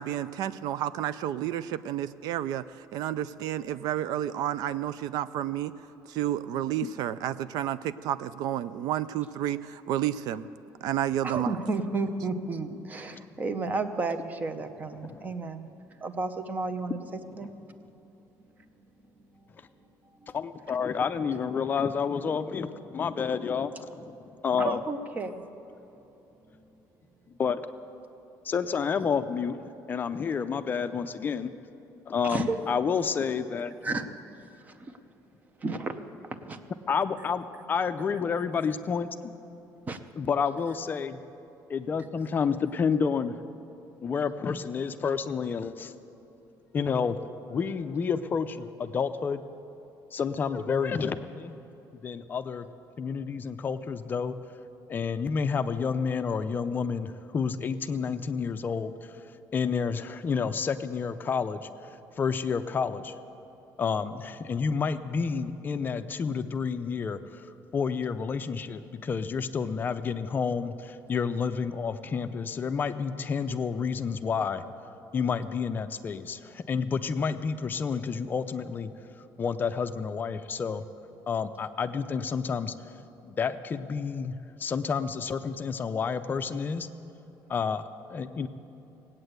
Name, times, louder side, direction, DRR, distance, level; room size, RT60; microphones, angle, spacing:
voice 1, 0.0-5.7 6.1-10.5 10.8-11.6, right 11 dB, 75° right, 15 dB, 0.4 m, -31 dB
voice 2, 11.2-15.7 16.0-17.0 17.4-17.5 20.2-20.3 24.6-25.5 32.2-32.6 33.8-34.0 34.6-34.9 35.6-36.0 36.3-36.6 39.9-40.0, right 3 dB, 25° right, 10 dB, 0.8 m, -32 dB
voice 3, 15.0-15.4 17.4-17.5 20.3-24.1 24.4-24.8 27.3-27.7 28.4-29.6 29.9-31.5 32.1-33.7 36.9-39.3 40.2-41.2 41.7-43.3 44.0-45.9 46.7-47.2 47.5-49.4 50.1-51.5 52.0-52.7 53.0-54.3 54.9-59.2 59.5-61.7 62.2-63.1 63.8-74.6 75.1-78.9 79.4-80.9 81.3-82.7 83.2-86.9 87.5-88.5, left 6 dB, 30° left, 9 dB, 0.5 m, -30 dB
18.0 x 8.8 x 7.9 m, 3.0 s
cardioid pair, 155°, 7 cm